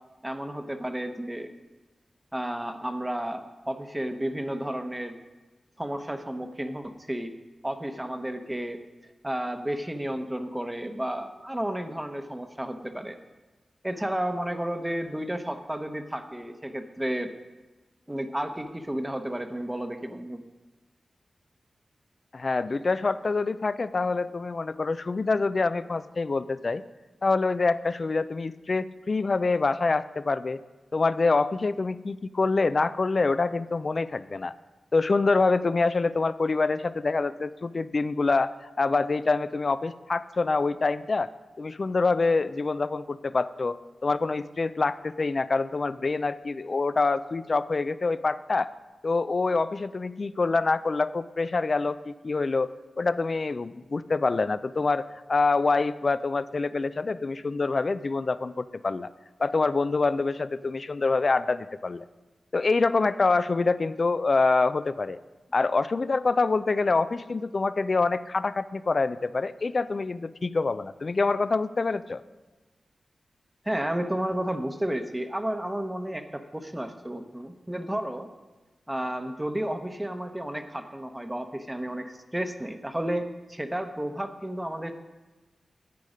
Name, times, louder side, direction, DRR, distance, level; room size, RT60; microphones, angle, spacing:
voice 1, 0.2-1.5 2.3-5.2 5.8-7.3 7.6-8.8 9.2-13.2 13.8-17.3 18.1-20.4 73.6-78.3 78.9-84.9, right 1 dB, 15° right, 7 dB, 0.9 m, -32 dB
voice 2, 22.3-26.8 27.2-30.6 30.9-34.5 34.9-41.3 41.6-43.8 44.0-48.7 49.0-59.1 59.4-62.0 62.5-65.2 65.5-72.2, left 3 dB, 55° left, 15 dB, 0.4 m, -26 dB
10.5 x 8.5 x 5.0 m, 1.2 s
cardioid pair, 55°, 0 cm